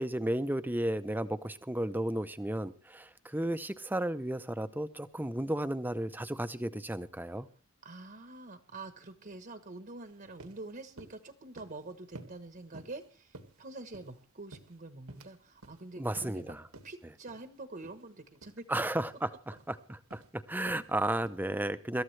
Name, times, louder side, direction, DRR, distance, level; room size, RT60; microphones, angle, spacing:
voice 1, 0.0-7.5 16.0-16.7 18.7-22.0, right 1 dB, 10° right, 12 dB, 0.7 m, -33 dB
voice 2, 7.8-16.6 16.8-18.7, right 2 dB, 40° right, 8 dB, 1.1 m, -46 dB
sound 1, 10.0-10.1 10.4-10.6 11.0-11.2 11.6-11.8 12.1-12.4 12.7-13.0 13.3-14.2 14.5-15.3 15.6-15.8 16.2-16.4 16.7-16.9 17.3-17.5 17.8-18.0 18.3-18.6 19.0-19.2 19.5-19.8 20.1-20.3 20.7-20.9 21.2-21.4, right 2 dB, 85° right, 1.9 m, -51 dB
25.5 x 13.5 x 3.3 m, 0.40 s
head